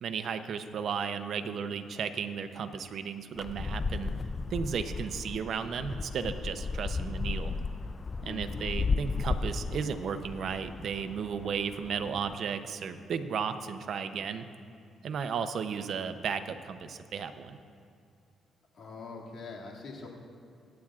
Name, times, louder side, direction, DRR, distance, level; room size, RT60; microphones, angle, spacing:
voice 1, 0.0-4.1 4.5-7.5 8.2-14.5 15.0-17.6, right 6 dB, 60° right, 9 dB, 0.7 m, -34 dB
sound 1, 3.4-12.4, left 4 dB, 25° left, 0.3 m, -35 dB
voice 2, 8.2-8.8 18.7-20.1, left 3 dB, 60° left, -3 dB, 2.3 m, -43 dB
25.5 x 8.7 x 2.5 m, 2.5 s
cardioid pair, 90°, 0 cm